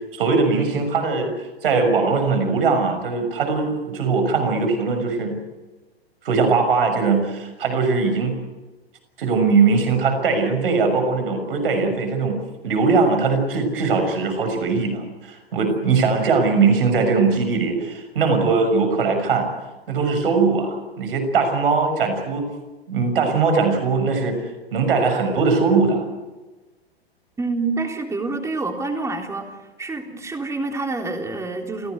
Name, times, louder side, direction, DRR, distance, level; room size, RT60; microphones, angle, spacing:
voice 1, 0.1-1.3 1.6-5.4 6.2-8.4 9.2-12.4 12.6-19.5 19.9-22.4 22.9-24.4 24.7-26.1, right 4 dB, 60° right, 6 dB, 6.3 m, -20 dB
voice 2, 27.4-29.5 29.8-31.9, right 3 dB, 10° right, 4 dB, 3.6 m, -27 dB
29.0 x 17.0 x 8.2 m, 1.2 s
figure-of-eight pair, 105°, 31 cm